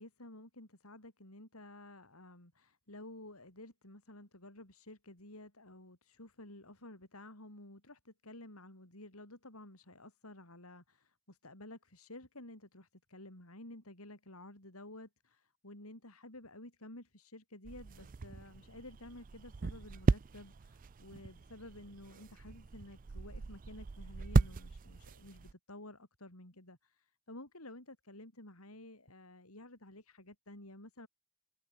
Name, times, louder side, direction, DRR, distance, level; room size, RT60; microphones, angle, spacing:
voice 1, 0.0-31.1, left 1 dB, 85° left, 7.9 m, -52 dB
sound 1, 17.6-25.5, right 3 dB, 40° right, 0.4 m, -36 dB
open air
head